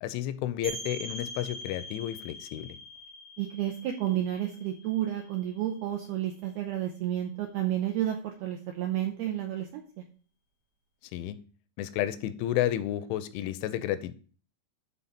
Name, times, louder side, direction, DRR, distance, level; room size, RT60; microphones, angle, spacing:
voice 1, 0.0-2.8 11.1-11.4 11.8-14.1, left 12 dB, 85° left, 3.0 m, -31 dB
sound 1, 0.6-6.1, equal, 50° right, 1.6 m, -43 dB
voice 2, 3.4-9.8, right 12 dB, 80° right, 2.2 m, -31 dB
10.5 x 3.8 x 5.7 m
omnidirectional pair, 5.4 m